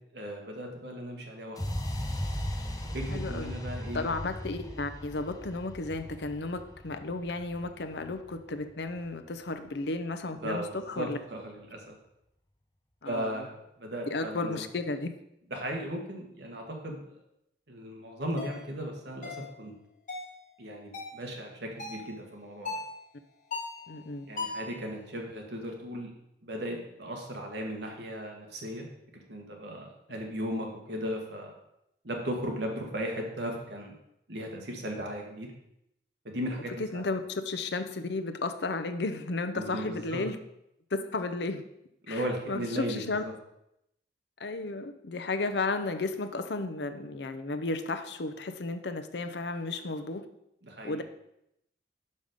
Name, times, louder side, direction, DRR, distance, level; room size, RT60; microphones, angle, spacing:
voice 1, 0.1-1.8 2.9-4.1 10.4-12.0 13.0-14.6 15.5-17.2 17.7-19.7 20.6-22.7 24.3-26.1 26.4-28.9 29.1-31.5 32.0-33.9 34.3-35.5 36.2-37.0 39.5-40.2 42.1-43.3 50.6-51.0, equal, 70° right, 1 dB, 1.6 m, -36 dB
sound 1, 1.6-9.5, equal, 20° left, 0.8 m, -38 dB
voice 2, 3.1-3.5 3.9-11.2 13.0-13.4 14.1-15.1 23.9-24.3 36.8-40.4 41.1-41.6 42.1-43.2 44.4-50.3 50.8-51.0, left 3 dB, 70° left, 8 dB, 0.6 m, -33 dB
sound 2, 18.4-18.6 19.2-19.5 20.1-20.4 20.9-21.2 21.8-22.1 22.6-22.9 23.5-23.8 24.4-24.7, left 3 dB, 45° left, 1.6 m, -37 dB
5.4 x 5.1 x 6.4 m, 0.81 s
head